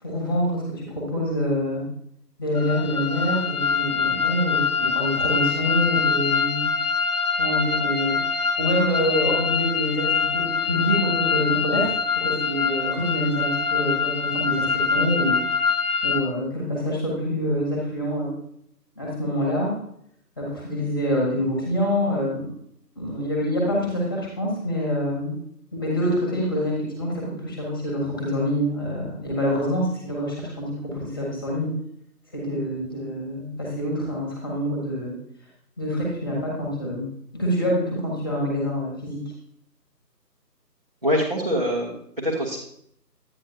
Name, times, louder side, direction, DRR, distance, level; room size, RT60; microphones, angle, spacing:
voice 1, 0.0-1.8 2.4-6.7 7.4-15.4 16.0-18.3 18.9-19.7 20.4-22.4 22.9-25.3 25.7-31.7 32.3-35.1 35.8-37.1 37.3-39.2, equal, 15° left, -3 dB, 1.5 m, -26 dB
sound 1, 2.6-16.2, left 5 dB, 65° left, 1.2 m, -24 dB
voice 2, 41.0-42.6, equal, 25° right, -5 dB, 1.0 m, -24 dB
11.0 x 9.1 x 2.8 m, 0.71 s
figure-of-eight pair, 160°, 49 cm